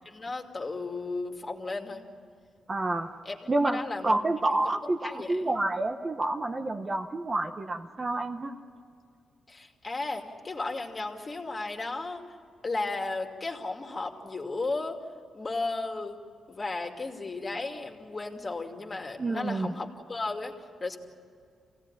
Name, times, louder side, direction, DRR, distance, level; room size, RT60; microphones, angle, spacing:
voice 1, 0.0-2.0 3.2-4.2 4.5-4.6 5.0-5.5 9.5-12.2 12.6-15.0 15.3-16.2 16.5-20.5 20.8-21.0, left 3 dB, 25° left, 3 dB, 2.5 m, -34 dB
voice 2, 2.7-3.1 3.5-8.5 19.2-19.7, right 2 dB, 25° right, 5 dB, 1.0 m, -29 dB
26.0 x 17.5 x 9.9 m, 2.2 s
cardioid pair, 125°, 0 cm